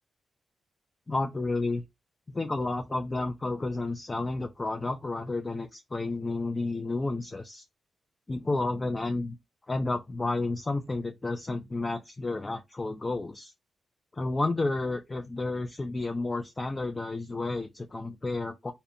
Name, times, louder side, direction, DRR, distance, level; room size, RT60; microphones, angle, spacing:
voice 1, 1.1-1.8 2.3-7.6 8.3-9.4 9.7-13.5 14.1-18.7, left 2 dB, 25° left, 0.4 m, -31 dB
2.7 x 2.1 x 2.5 m
cardioid pair, 75°, 0 cm